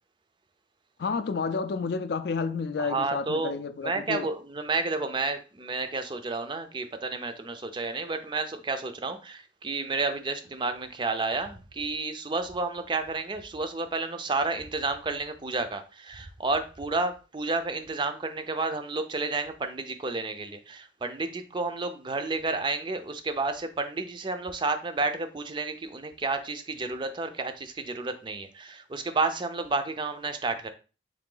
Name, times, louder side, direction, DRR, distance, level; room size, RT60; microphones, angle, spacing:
voice 1, 1.0-4.3, left 4 dB, 60° left, 0.4 m, -30 dB
voice 2, 2.8-3.6 3.8-30.7, right 3 dB, 25° right, 0.4 m, -31 dB
3.8 x 2.6 x 3.8 m
head